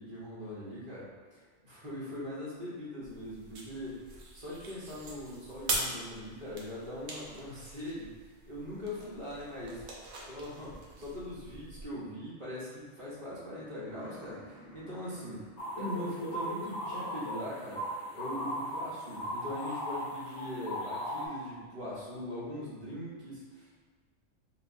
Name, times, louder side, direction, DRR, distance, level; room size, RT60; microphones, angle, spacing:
voice 1, 0.0-4.0 4.3-8.1 8.5-9.8 10.2-14.4 14.7-15.5 15.8-17.8 18.1-23.7, left 1 dB, 40° right, -8 dB, 1.1 m, -41 dB
sound 1, 3.0-11.9, right 2 dB, 80° right, 1.1 m, -42 dB
sound 2, 13.7-21.2, equal, ahead, 1.0 m, -55 dB
sound 3, 15.6-21.3, equal, 65° left, 1.0 m, -37 dB
5.4 x 2.6 x 2.6 m, 1.5 s
omnidirectional pair, 1.4 m